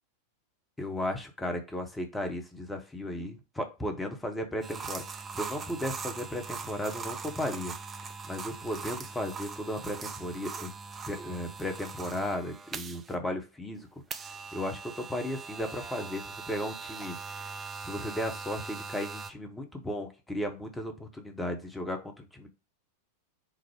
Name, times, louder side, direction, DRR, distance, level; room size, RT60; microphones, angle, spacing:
voice 1, 0.8-7.7 8.3-10.7 11.1-13.9 14.5-17.2 17.8-22.5, left 1 dB, 10° left, 5 dB, 0.8 m, -35 dB
sound 1, 4.6-13.1 14.1-19.3, right 5 dB, 20° right, 0.4 m, -41 dB
4.7 x 2.0 x 4.7 m, 0.29 s
figure-of-eight pair, 90°, 0 cm